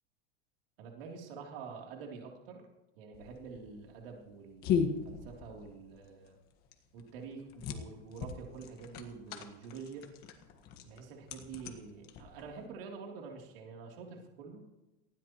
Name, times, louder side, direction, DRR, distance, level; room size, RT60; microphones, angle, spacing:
voice 1, 0.8-2.6 3.0-6.4 6.9-10.1 10.8-14.6, right 5 dB, 65° right, 0 dB, 3.3 m, -47 dB
sound 1, 3.1-12.7, left 7 dB, 30° left, 1.5 m, -38 dB
19.0 x 16.0 x 3.1 m, 1.0 s
supercardioid pair, 170°, 31 cm